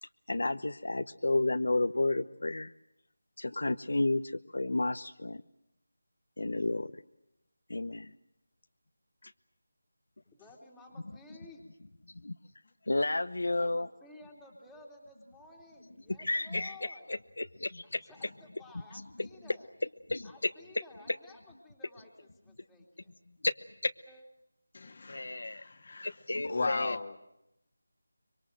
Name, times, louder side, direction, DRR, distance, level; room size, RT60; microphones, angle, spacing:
voice 1, 0.0-2.7 3.4-5.4 6.4-7.0 7.7-8.1 9.2-9.3 12.1-12.4 12.9-13.9 16.2-18.1 18.9-19.6 20.1-20.5 21.1-21.2 23.4-23.9 25.1-25.6 26.0-27.0, left 2 dB, 70° left, 10 dB, 0.9 m, -32 dB
voice 2, 10.3-11.6 13.6-17.0 18.0-19.7 20.2-23.1 24.1-24.2, left 2 dB, 5° left, -2 dB, 2.7 m, -54 dB
voice 3, 24.7-26.1 26.4-27.1, left 3 dB, 45° left, 6 dB, 1.6 m, -36 dB
25.0 x 24.0 x 7.7 m, 0.85 s
figure-of-eight pair, 170°, 0 cm